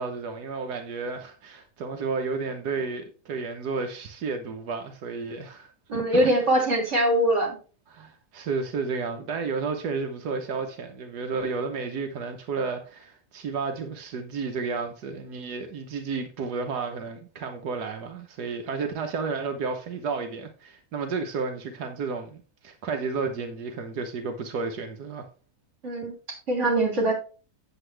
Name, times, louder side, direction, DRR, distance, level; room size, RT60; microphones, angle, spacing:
voice 1, 0.0-6.3 7.9-25.3, right 4 dB, 85° right, 1.6 m, -32 dB
voice 2, 5.9-7.6 25.8-26.1 26.5-27.1, right 1 dB, 50° right, 3.3 m, -22 dB
8.8 x 8.1 x 3.3 m
omnidirectional pair, 1.7 m